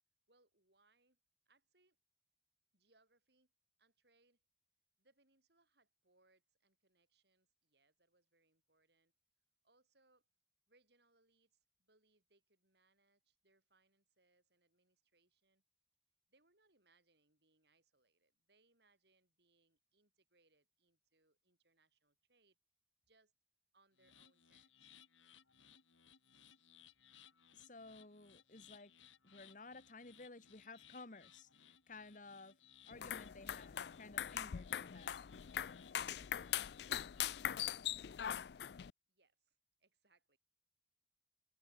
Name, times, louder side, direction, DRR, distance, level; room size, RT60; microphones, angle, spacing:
voice 1, 0.3-1.2 1.5-2.0 2.7-3.5 3.8-4.4 5.0-9.1 9.6-10.3 10.7-15.6 16.3-22.6 23.0-23.3 23.7-25.0 39.1-40.4, right 3 dB, 60° right, 6.3 m, -77 dB
sound 1, 24.0-37.5, left 9 dB, 90° left, 3.8 m, -65 dB
voice 2, 27.5-28.9 29.2-32.6 32.9-35.3, left 3 dB, 45° left, 1.6 m, -55 dB
sound 2, 32.9-38.9, left 10 dB, 60° left, 0.4 m, -42 dB
head